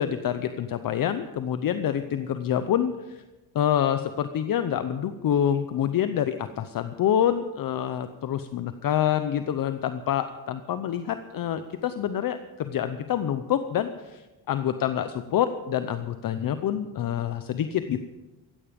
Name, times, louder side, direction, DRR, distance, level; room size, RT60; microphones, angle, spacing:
voice 1, 0.0-3.2 3.5-18.0, left 9 dB, 50° left, 10 dB, 0.8 m, -27 dB
16.0 x 14.0 x 5.2 m, 1.1 s
cardioid pair, 145°, 45 cm